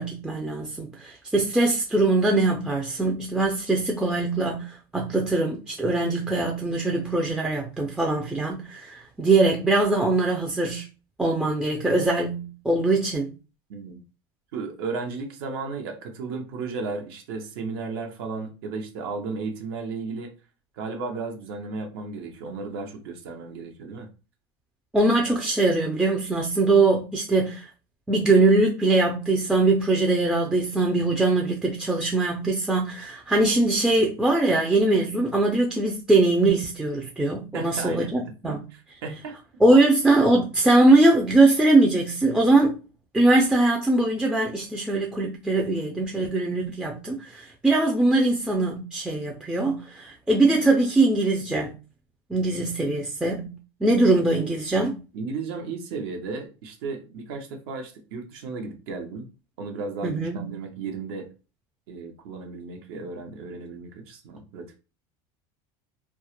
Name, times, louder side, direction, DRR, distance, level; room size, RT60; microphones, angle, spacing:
voice 1, 0.0-10.9 11.2-13.3 24.9-27.7 28.1-38.6 39.6-42.8 43.1-51.7 52.3-53.5 53.8-55.0 60.0-60.5, right 2 dB, 5° right, 0.3 m, -22 dB
voice 2, 13.7-14.0 14.5-20.3 20.8-24.1 37.5-38.1 38.4-39.3 52.4-52.6 55.1-59.3 59.6-61.3 61.9-64.8, right 4 dB, 80° right, 0.7 m, -34 dB
2.2 x 2.0 x 2.8 m
supercardioid pair, 130°, 13 cm